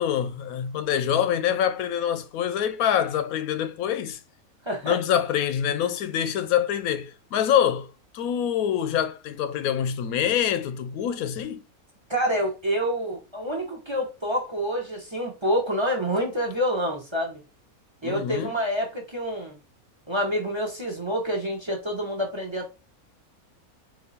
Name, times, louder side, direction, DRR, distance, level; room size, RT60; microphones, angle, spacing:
voice 1, 0.0-4.2 4.8-11.6 18.0-18.5, left 9 dB, 80° left, 1.0 m, -25 dB
voice 2, 4.6-5.0 12.1-17.4 18.0-19.6 20.1-22.7, equal, 20° right, 1.0 m, -27 dB
4.0 x 2.8 x 4.1 m
omnidirectional pair, 1.5 m